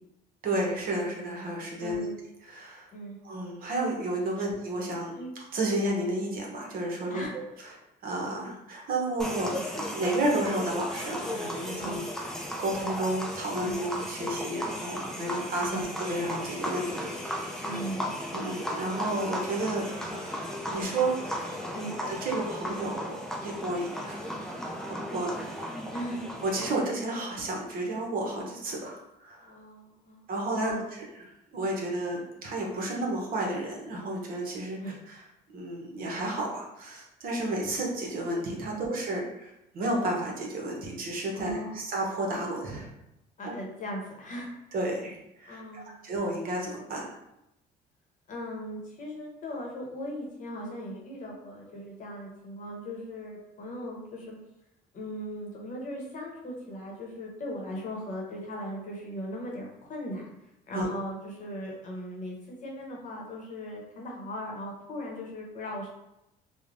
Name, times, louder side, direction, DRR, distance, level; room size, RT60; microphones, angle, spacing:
voice 1, 0.4-2.1 2.4-2.9 3.2-5.1 5.5-7.7 8.0-12.3 12.6-17.8 18.3-20.4 20.7-21.6 22.1-24.3 24.9-25.7 26.4-29.5 30.3-30.7 31.5-34.8 35.1-35.2 35.5-42.9 44.7-47.1 60.7-60.9, right 1 dB, 60° right, -1 dB, 0.8 m, -32 dB
voice 2, 1.8-2.1 2.9-3.2 4.4-4.5 5.2-5.3 7.1-7.4 9.4-9.6 11.8-12.1 13.6-13.8 15.7-15.8 17.6-18.1 21.7-21.9 25.9-26.2 29.4-30.3 30.6-30.8 34.8-34.9 38.7-38.9 41.3-41.8 43.4-44.5 45.5-46.1 48.3-54.4 54.9-60.3 60.7-65.9, equal, 45° left, -1 dB, 0.8 m, -38 dB
sound 1, 9.2-26.7, equal, 5° left, 0.4 m, -36 dB
3.1 x 2.1 x 2.5 m, 0.87 s
cardioid pair, 110°, 17 cm